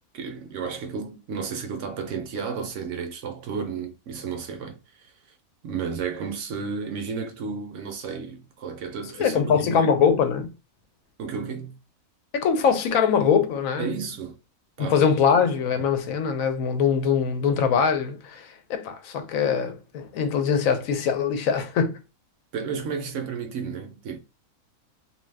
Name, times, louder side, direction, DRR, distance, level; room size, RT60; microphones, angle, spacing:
voice 1, 0.1-5.1 5.6-9.9 11.2-11.8 13.8-14.3 14.8-15.0 22.5-24.2, right 6 dB, 65° right, 0.9 m, -32 dB
voice 2, 9.2-10.5 12.3-13.9 14.8-22.0, left 6 dB, 75° left, 1.0 m, -22 dB
2.6 x 2.3 x 3.3 m
omnidirectional pair, 1.5 m